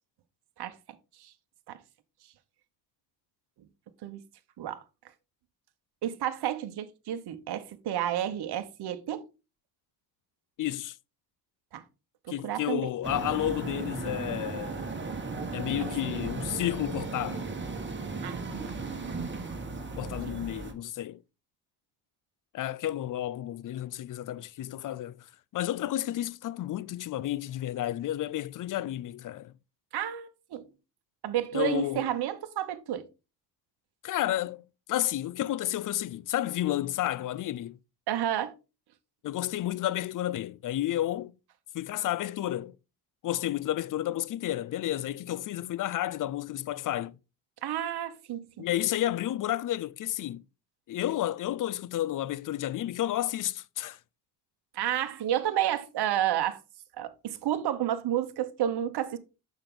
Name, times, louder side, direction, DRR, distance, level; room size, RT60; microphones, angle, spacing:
voice 1, 6.0-9.2 11.7-11.8 12.3-12.8 15.8-15.9 18.2-19.2 19.5-19.6 20.0-20.2 29.9-30.7 31.2-33.1 38.1-38.5 47.6-48.7 54.7-56.6 57.0-59.2, right 11 dB, 55° right, 1.1 m, -31 dB
voice 2, 10.6-11.0 12.3-14.9 15.5-17.5 20.0-21.2 22.5-29.5 31.5-32.1 34.0-37.8 39.2-41.3 41.7-42.8 43.2-47.2 48.6-50.4 50.9-54.0, left 13 dB, 45° left, 0.6 m, -31 dB
sound 1, 13.0-20.7, right 3 dB, 25° right, 1.6 m, -36 dB
6.7 x 5.8 x 3.8 m
supercardioid pair, 65°, 46 cm